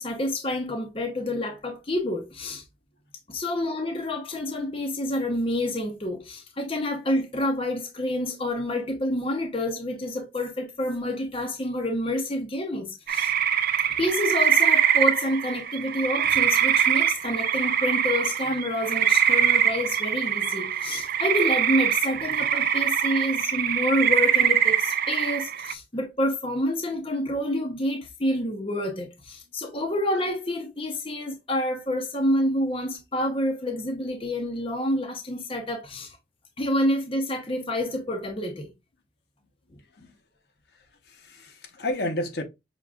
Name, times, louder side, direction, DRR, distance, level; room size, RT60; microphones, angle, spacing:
voice 1, 0.0-2.6 3.3-13.3 14.0-36.2 36.6-38.7, left 1 dB, 30° left, 0.8 m, -28 dB
sound 1, 13.1-25.7, right 9 dB, 50° right, 0.3 m, -23 dB
voice 2, 40.7-42.4, left 1 dB, 60° left, 0.9 m, -32 dB
6.0 x 3.0 x 2.3 m
head